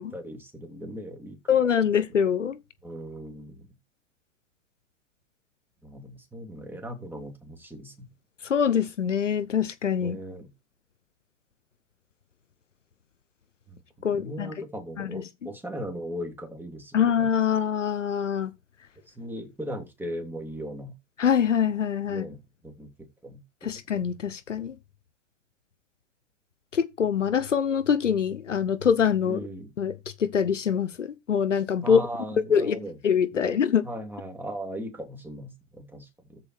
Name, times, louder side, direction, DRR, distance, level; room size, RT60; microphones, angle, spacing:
voice 1, 0.0-1.4 2.8-3.7 5.8-8.1 10.0-10.5 13.7-17.2 19.1-20.9 22.1-22.4 22.6-22.9 23.2-23.7 29.2-29.7 31.8-33.0 33.3-36.4, equal, 5° right, 2.9 m, -38 dB
voice 2, 1.5-2.6 8.4-10.2 14.0-14.5 15.0-15.2 16.9-18.5 21.2-22.2 23.6-24.8 26.7-29.4 29.8-32.0 32.5-32.8 33.0-33.8, left 7 dB, 75° left, 1.0 m, -24 dB
13.5 x 4.8 x 4.6 m
figure-of-eight pair, 100°, 37 cm